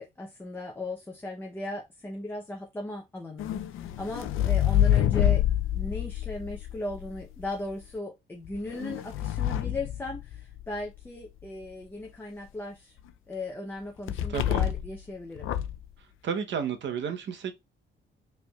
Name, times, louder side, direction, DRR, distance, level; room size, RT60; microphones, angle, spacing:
voice 1, 0.0-5.4 5.7-13.0 13.3-15.5, left 2 dB, 10° left, 0.6 m, -37 dB
sound 1, 3.4-7.5 8.4-10.8 14.1-15.0 15.4-15.8, left 11 dB, 85° left, 0.5 m, -27 dB
voice 2, 14.3-14.7 16.2-17.5, right 7 dB, 65° right, 0.8 m, -32 dB
4.9 x 3.2 x 2.3 m
cardioid pair, 125°, 21 cm